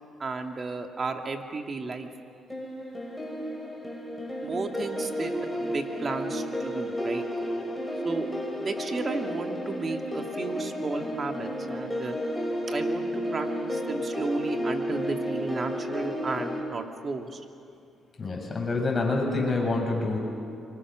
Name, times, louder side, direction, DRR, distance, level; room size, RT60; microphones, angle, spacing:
voice 1, 0.2-2.1 4.4-7.2 8.0-8.3 8.6-12.2 12.7-17.5, right 3 dB, 40° right, 4 dB, 2.1 m, -33 dB
sound 1, 2.5-16.6, equal, 5° left, 5.8 m, -32 dB
voice 2, 18.2-20.2, left 3 dB, 30° left, -1 dB, 7.2 m, -27 dB
27.0 x 24.0 x 6.3 m, 2.5 s
cardioid pair, 90°, 0 cm